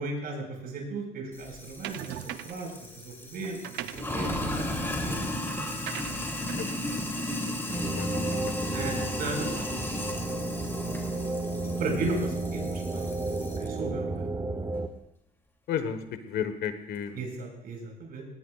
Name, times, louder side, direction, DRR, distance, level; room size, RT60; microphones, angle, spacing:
voice 1, 0.0-5.3 8.7-8.9 9.2-9.8 10.1-10.4 11.8-13.2 13.6-14.2 17.2-18.3, right 3 dB, 60° right, 1 dB, 5.7 m, -36 dB
Sink (filling or washing), 1.4-13.7, left 1 dB, 15° left, 2.8 m, -35 dB
sound 1, 1.8-2.7 3.4-8.1, right 13 dB, 90° right, 0.6 m, -42 dB
voice 2, 7.7-9.0 15.7-17.2, left 8 dB, 70° left, 9 dB, 1.3 m, -34 dB
sound 2, 7.7-14.9, right 2 dB, 20° right, 1.0 m, -32 dB
20.5 x 18.5 x 2.4 m, 0.80 s
cardioid pair, 110°, 17 cm